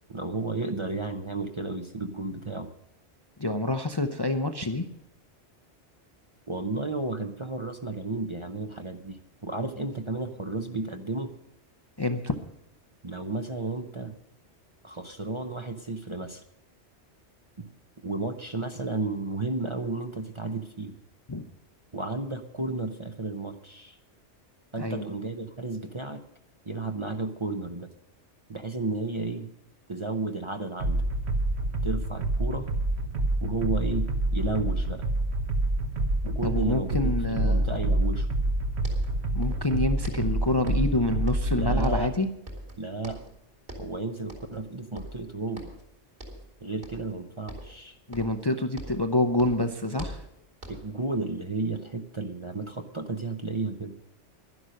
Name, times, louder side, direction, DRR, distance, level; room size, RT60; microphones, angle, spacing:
voice 1, 0.1-2.7 6.5-11.3 13.0-14.1 14.8-16.4 18.0-20.9 21.9-24.0 24.7-26.2 26.7-27.9 28.5-29.5 29.9-31.0 31.8-32.7 33.4-35.0 36.2-38.3 41.5-42.1 42.8-43.2 43.8-45.7 46.6-47.9 50.7-53.9, right 3 dB, 30° right, 6 dB, 0.6 m, -33 dB
voice 2, 3.4-4.9 12.0-12.3 21.3-21.5 24.8-25.0 36.4-37.6 39.3-42.3 48.1-50.2, left 2 dB, 30° left, 6 dB, 0.6 m, -27 dB
sound 1, 30.8-42.1, right 1 dB, 70° right, 1.3 m, -27 dB
sound 2, 38.5-38.6 38.8-39.7 40.0-41.0 41.3-42.2 42.5-43.4 43.7-44.0 44.3-44.7 45.0-45.9 46.2-46.5 46.8-47.2 47.5-49.1 49.4-51.0, equal, 50° right, 2.7 m, -42 dB
11.5 x 11.0 x 6.4 m, 0.80 s
omnidirectional pair, 1.2 m